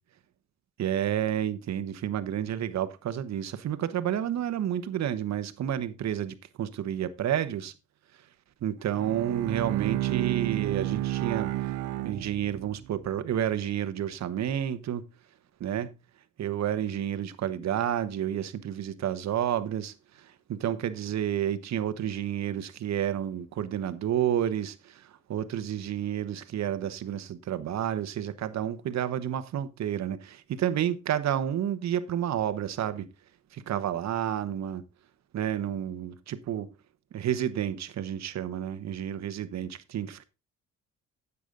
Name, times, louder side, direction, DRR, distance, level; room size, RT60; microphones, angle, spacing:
voice 1, 0.8-7.7 8.6-11.5 12.0-15.0 15.6-15.9 16.4-19.9 20.5-33.1 33.5-34.8 35.3-36.7 37.1-40.2, right 10 dB, 60° right, 1.1 m, -30 dB
Bowed string instrument, 8.8-12.9, right 15 dB, 90° right, 0.7 m, -31 dB
10.0 x 8.3 x 3.8 m
cardioid pair, 90°, 30 cm